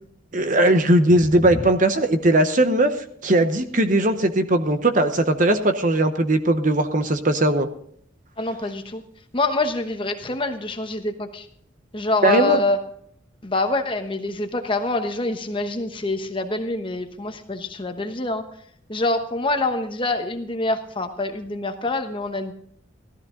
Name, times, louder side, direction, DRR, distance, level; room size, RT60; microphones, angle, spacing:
voice 1, 0.3-2.9 3.2-7.7 12.2-12.6, right 1 dB, 40° right, 8 dB, 0.9 m, -19 dB
voice 2, 8.4-9.0 9.3-11.5 11.9-12.8 13.4-18.4 18.9-22.5, left 2 dB, 25° left, 6 dB, 1.1 m, -25 dB
15.0 x 13.5 x 3.9 m, 0.66 s
head